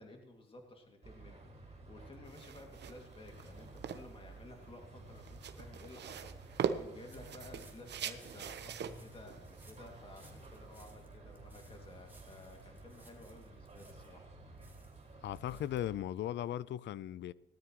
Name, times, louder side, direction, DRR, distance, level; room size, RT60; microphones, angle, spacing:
voice 1, 0.0-14.6, left 2 dB, 25° left, 2.3 m, -54 dB
sound 1, 1.0-16.0, right 2 dB, 30° right, 4.4 m, -53 dB
sound 2, 2.1-2.2 2.7-2.8 3.3-3.4 3.9-4.0 4.5-4.7 5.1-5.3 5.6-5.9 6.4-6.5 7.1-14.2 14.6-15.8 16.1-16.2 16.5-16.6, right 2 dB, 10° right, 2.5 m, -65 dB
sound 3, 2.3-10.8, right 8 dB, 60° right, 1.0 m, -42 dB
voice 2, 15.2-17.3, left 12 dB, 65° left, 0.5 m, -37 dB
18.5 x 13.0 x 3.1 m
cardioid pair, 90°, 20 cm